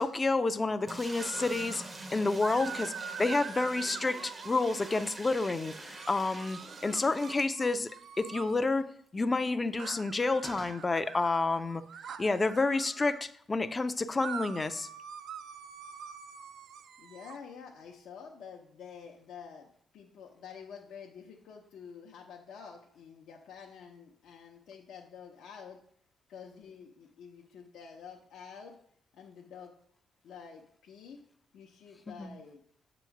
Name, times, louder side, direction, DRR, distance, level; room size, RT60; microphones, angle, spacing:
voice 1, 0.0-1.8 2.1-2.9 3.2-7.9 8.2-11.8 12.2-14.9 32.2-32.3, left 3 dB, 25° left, 11 dB, 0.4 m, -29 dB
sound 1, 0.9-8.0 8.4-8.5 8.7-8.8 10.4-10.8, right 2 dB, 25° right, 0.6 m, -45 dB
sound 2, 1.2-1.9 2.4-5.2 5.9-8.6 9.8-13.2 14.2-17.4, right 7 dB, 70° right, 0.4 m, -44 dB
voice 2, 17.0-25.8 26.3-28.7 29.1-29.7 30.2-31.2 31.5-32.6, left 6 dB, 80° left, 0 dB, 0.6 m, -49 dB
7.0 x 3.0 x 5.7 m, 0.65 s
cardioid pair, 90°, 0 cm